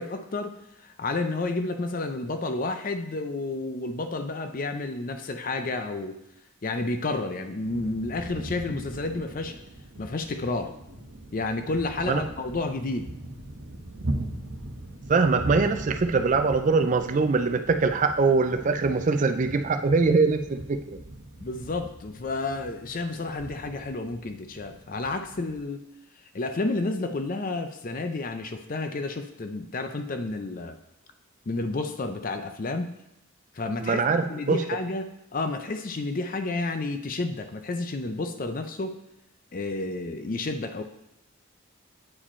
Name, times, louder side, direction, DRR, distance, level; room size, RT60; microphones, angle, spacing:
voice 1, 0.0-6.2 6.6-9.6 10.0-10.7 11.3-13.1 21.4-25.9 26.3-30.8 31.5-32.9 33.5-34.0 34.3-39.0 39.5-40.8, left 2 dB, 40° left, 8 dB, 0.5 m, -31 dB
sound 1, 7.6-25.6, right 1 dB, 90° right, 1.0 m, -39 dB
voice 2, 15.1-21.0 33.8-34.6, right 4 dB, 35° right, 8 dB, 0.4 m, -23 dB
8.6 x 4.9 x 4.3 m, 0.85 s
head